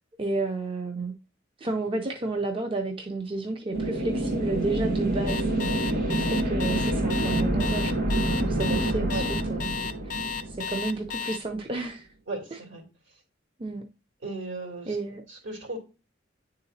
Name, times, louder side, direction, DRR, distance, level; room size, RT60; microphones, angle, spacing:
voice 1, 0.2-1.1 1.6-5.5 6.2-8.1 8.4-9.7 10.5-12.1 12.5-12.6 13.6-13.8 14.9-15.2, right 2 dB, 30° right, 0.5 m, -31 dB
sound 1, 3.7-11.3, right 1 dB, 55° right, 2.1 m, -27 dB
Alarm, 5.3-11.4, left 6 dB, 40° left, 0.5 m, -33 dB
voice 2, 12.3-12.8 14.2-14.9 15.3-15.8, right 2 dB, 75° right, 2.7 m, -36 dB
9.6 x 3.9 x 2.7 m
head